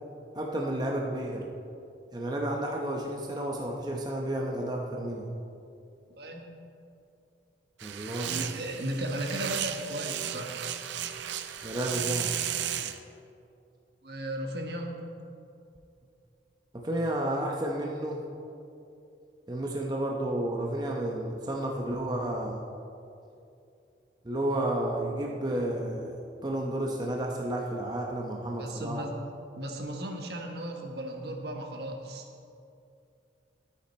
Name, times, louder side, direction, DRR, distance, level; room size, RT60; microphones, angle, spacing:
voice 1, 0.3-1.5 2.1-5.3 7.8-8.3 11.6-12.3 16.7-18.2 19.5-22.6 24.2-26.1 26.4-29.1, right 1 dB, 25° right, 0 dB, 0.8 m, -31 dB
voice 2, 6.2-6.5 8.2-10.6 14.0-14.9 28.6-29.1 29.6-32.2, right 1 dB, 65° right, 2 dB, 1.3 m, -36 dB
sound 1, 7.8-13.0, right 10 dB, 85° right, 0.6 m, -34 dB
13.0 x 8.7 x 4.2 m, 2.6 s
head